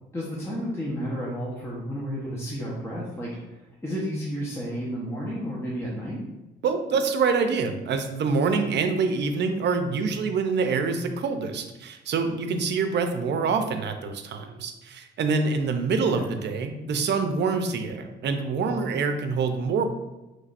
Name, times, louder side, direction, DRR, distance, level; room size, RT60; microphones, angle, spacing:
voice 1, 0.1-6.2 16.2-16.3, equal, 15° left, -6 dB, 1.0 m, -32 dB
voice 2, 6.6-19.8, right 4 dB, 60° right, 7 dB, 0.6 m, -26 dB
5.6 x 3.2 x 2.5 m, 1.0 s
cardioid pair, 90°, 20 cm